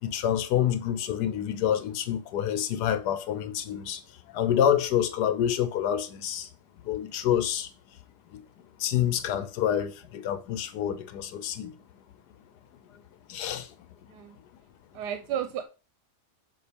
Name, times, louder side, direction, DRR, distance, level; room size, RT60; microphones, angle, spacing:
voice 1, 0.0-6.5 6.8-8.0 8.3-8.4 8.8-11.8 12.9-13.0 13.3-13.7, left 10 dB, 80° left, 1.3 m, -28 dB
voice 2, 14.9-15.6, right 9 dB, 85° right, 1.2 m, -32 dB
7.0 x 3.1 x 5.1 m
omnidirectional pair, 1.7 m